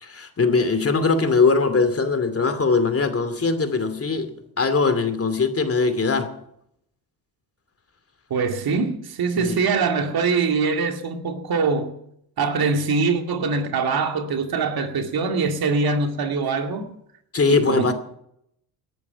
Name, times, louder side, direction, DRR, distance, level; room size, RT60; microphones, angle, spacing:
voice 1, 0.0-4.3 4.6-6.3 9.4-9.6 17.3-17.9, left 4 dB, 30° left, 2.6 m, -21 dB
voice 2, 8.3-11.9 12.4-16.9 17.5-17.9, right 4 dB, 50° right, 2.2 m, -23 dB
19.0 x 11.0 x 5.8 m
hypercardioid pair, 60°, 46 cm